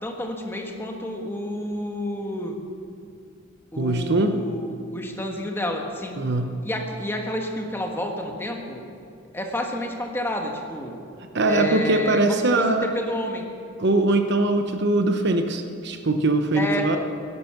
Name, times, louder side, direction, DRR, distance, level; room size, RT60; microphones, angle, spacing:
voice 1, 0.0-2.6 3.7-6.2 6.6-8.8 9.3-11.0 11.4-13.5 16.5-16.9, left 1 dB, 10° left, 2 dB, 1.4 m, -30 dB
voice 2, 3.8-4.4 6.2-6.5 11.3-12.9 13.8-17.0, right 2 dB, 55° right, 6 dB, 1.0 m, -21 dB
17.0 x 11.0 x 6.0 m, 2.5 s
head